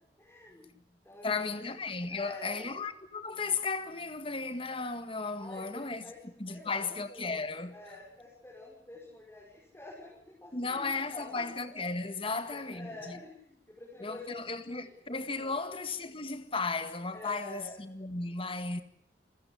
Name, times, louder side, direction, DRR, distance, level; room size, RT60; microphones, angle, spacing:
voice 1, 0.2-0.7 1.0-1.6 2.1-2.7 5.4-6.2 6.5-7.3 7.7-11.8 12.2-14.9 15.4-15.6 17.1-17.8, left 2 dB, 15° left, 5.9 m, -47 dB
voice 2, 1.2-7.7 10.5-13.2 14.0-18.8, left 4 dB, 30° left, 1.8 m, -35 dB
29.0 x 15.5 x 8.4 m
head